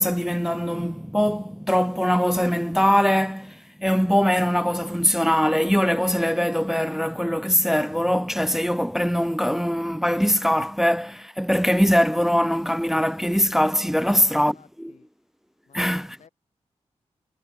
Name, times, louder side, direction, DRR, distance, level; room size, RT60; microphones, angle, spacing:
voice 1, 0.0-14.9 15.7-16.2, equal, 5° right, 0.3 m, -22 dB
voice 2, 13.9-15.1 15.6-16.3, left 7 dB, 80° left, 7.3 m, -56 dB
cardioid pair, 65°, 12 cm